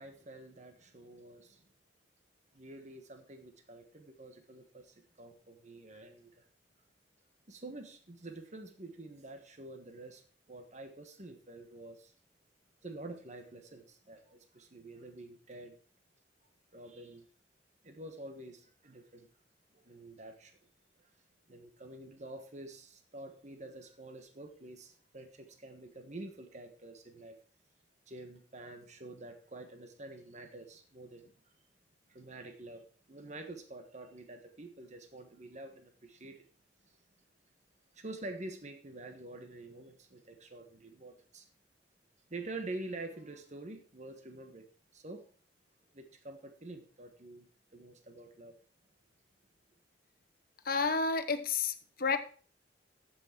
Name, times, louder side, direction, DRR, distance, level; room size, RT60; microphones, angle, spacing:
voice 1, 0.0-1.6 2.5-6.4 7.5-10.2 10.5-12.1 12.8-15.8 16.7-17.3 17.8-19.3 19.8-20.5 21.0-21.1 21.5-27.4 28.1-31.3 32.1-36.4 36.8-37.0 37.9-41.5 42.3-44.7 44.9-45.3 45.9-47.5 47.7-48.6, right 2 dB, 40° right, 1.4 m, -47 dB
voice 2, 50.6-52.2, left 4 dB, 55° left, 1.0 m, -30 dB
14.5 x 6.3 x 4.5 m
head